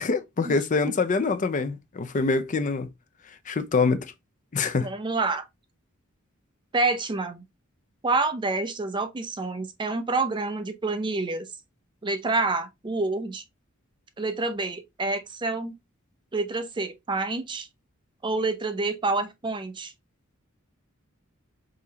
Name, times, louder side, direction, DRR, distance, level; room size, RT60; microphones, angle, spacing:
voice 1, 0.0-2.9 3.5-4.0 4.5-4.9, left 4 dB, 35° left, 0.4 m, -25 dB
voice 2, 4.8-5.4 6.7-7.4 8.0-11.5 12.0-13.4 14.2-15.7 16.3-17.7 18.2-19.9, right 3 dB, 20° right, 0.5 m, -28 dB
3.8 x 3.1 x 2.7 m
head